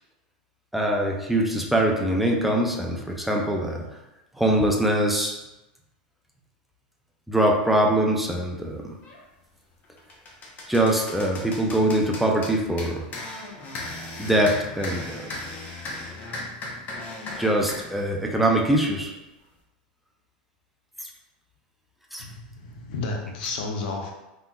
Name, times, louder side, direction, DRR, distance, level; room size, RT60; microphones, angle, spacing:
voice 1, 0.7-3.9 4.4-5.4 7.3-8.9 10.7-13.0 14.2-15.3 17.4-19.1 21.0-21.1 22.1-22.2, right 1 dB, 5° right, 0 dB, 0.5 m, -23 dB
sound 1, 9.0-9.2 9.7-17.9, left 2 dB, 35° left, 0.8 m, -37 dB
voice 2, 22.2-24.1, left 3 dB, 70° left, 1 dB, 0.7 m, -32 dB
3.4 x 2.9 x 2.3 m, 0.96 s
hypercardioid pair, 100°, 5 cm